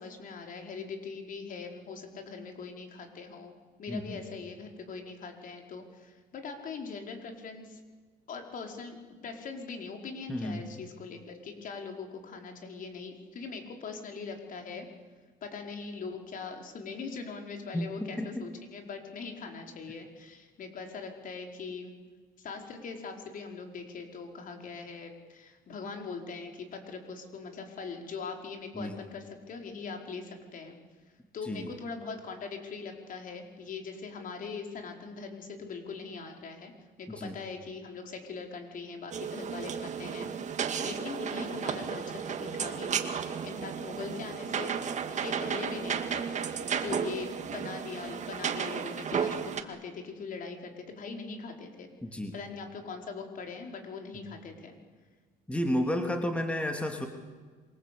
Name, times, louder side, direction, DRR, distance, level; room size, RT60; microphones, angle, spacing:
voice 1, 0.0-3.5 3.8-7.8 8.3-9.0 9.2-14.9 15.4-21.9 22.4-30.8 31.3-36.7 37.0-43.2 43.4-44.7 45.2-51.9 52.3-54.8, left 4 dB, 55° left, 3 dB, 5.0 m, -41 dB
voice 2, 3.9-4.2 10.3-10.6 17.7-18.4 28.7-29.0 31.4-31.7 37.1-37.4 52.0-52.3 55.5-57.1, left 1 dB, 5° left, 4 dB, 3.1 m, -32 dB
sound 1, 39.1-49.6, right 7 dB, 45° right, 2.3 m, -33 dB
27.0 x 23.5 x 8.6 m, 1.5 s
cardioid pair, 110°, 17 cm